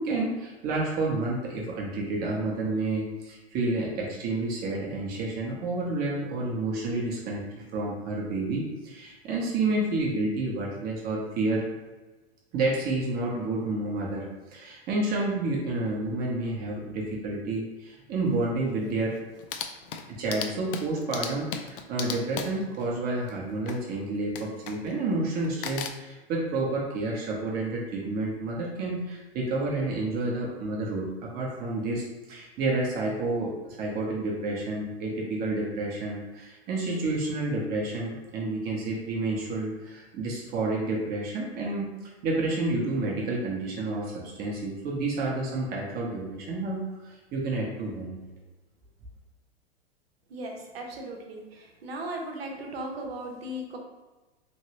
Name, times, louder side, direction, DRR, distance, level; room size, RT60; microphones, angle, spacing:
voice 1, 0.0-11.6 12.5-14.3 14.5-19.1 20.2-48.2, right 2 dB, 30° right, -2 dB, 0.7 m, -30 dB
sound 1, 18.3-18.4 18.8-18.9 19.2-23.9 24.4-25.1 25.4-25.9, left 7 dB, 60° left, 0.4 m, -37 dB
voice 2, 50.3-53.8, right 1 dB, 70° right, 1 dB, 0.8 m, -37 dB
3.1 x 2.6 x 2.9 m, 1.1 s
hypercardioid pair, 105°, 31 cm